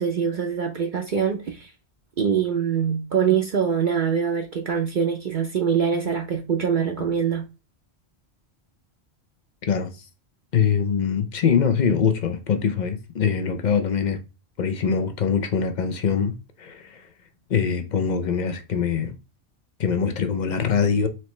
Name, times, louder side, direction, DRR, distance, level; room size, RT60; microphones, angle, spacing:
voice 1, 0.0-1.7 2.2-7.4, right 7 dB, 55° right, 0.7 m, -24 dB
voice 2, 9.6-10.1 10.5-14.2 14.6-17.1 17.5-19.1 19.8-21.1, left 6 dB, 50° left, 0.6 m, -23 dB
4.3 x 3.0 x 3.1 m
omnidirectional pair, 1.1 m